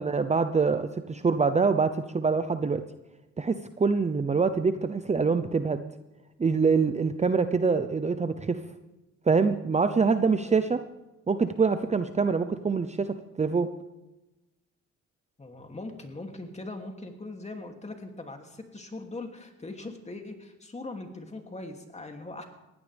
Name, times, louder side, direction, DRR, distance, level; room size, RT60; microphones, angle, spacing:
voice 1, 0.0-2.8 3.4-5.8 6.4-8.6 9.3-10.8 11.3-13.7, right 5 dB, 25° right, 9 dB, 0.8 m, -25 dB
voice 2, 10.1-10.7 15.4-22.4, left 2 dB, 20° left, 3 dB, 2.8 m, -41 dB
21.0 x 16.0 x 3.6 m, 1.0 s
cardioid pair, 90°, 30 cm